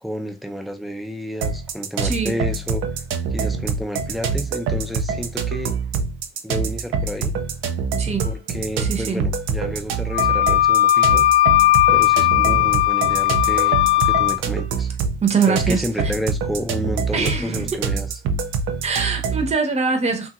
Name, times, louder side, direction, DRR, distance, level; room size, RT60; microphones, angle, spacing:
voice 1, 0.0-2.8 3.3-5.8 6.4-7.3 8.2-11.3 11.9-13.8 14.0-14.9 15.5-18.1, equal, ahead, 0.6 m, -30 dB
sound 1, 1.4-19.5, right 5 dB, 90° right, 0.5 m, -25 dB
voice 2, 2.0-2.4 8.0-8.3 8.8-9.2 15.2-15.8 17.1-17.8 18.8-20.3, right 5 dB, 35° right, 0.8 m, -22 dB
Wind instrument woodwind instrument, 10.1-14.4, left 14 dB, 75° left, 0.5 m, -17 dB
2.9 x 2.7 x 2.4 m
cardioid pair, 90°, 20 cm